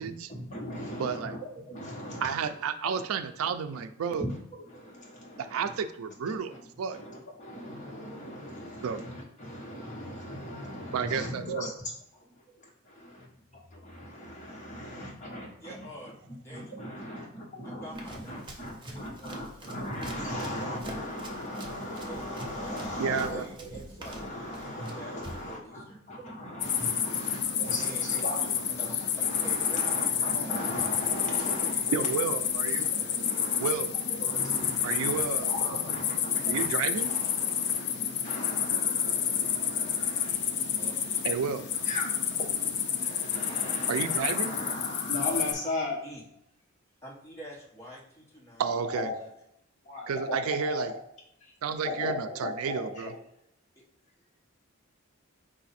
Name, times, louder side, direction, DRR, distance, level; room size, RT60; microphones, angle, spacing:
voice 1, 0.3-2.6 2.9-3.0 3.7-3.8 4.2-5.8 6.3-6.6 6.9-15.9 16.5-32.2 32.8-32.9 33.1-33.7 34.2-36.7 36.9-37.8 38.2-40.8 41.8-42.7 43.0-46.0 48.7-49.2 49.8-51.0 51.4-51.5 51.8-53.2, left 1 dB, 35° left, -2 dB, 1.2 m, -38 dB
voice 2, 1.0-1.4 2.2-4.2 5.4-7.0 8.8-9.0 10.9-11.7 23.0-23.4 31.9-32.9 33.6-33.9 34.8-35.5 36.5-37.1 41.2-41.6 43.9-44.5 48.6-49.1 50.1-50.9 51.6-53.1, right 6 dB, 80° right, 10 dB, 0.4 m, -31 dB
voice 3, 15.6-16.7 17.6-20.4 22.1-26.0 27.8-28.2 28.7-30.5 31.7-32.1 32.4-33.6 34.4-34.8 40.8-41.0 45.2-45.4 46.0-46.2 47.0-49.3 53.7-53.8, right 1 dB, 15° left, -6 dB, 1.4 m, -47 dB
Run, 17.9-25.6, right 1 dB, 20° right, 0.6 m, -47 dB
sound 1, 26.6-45.5, left 8 dB, 50° left, 0.5 m, -29 dB
4.9 x 2.5 x 4.1 m, 0.79 s
head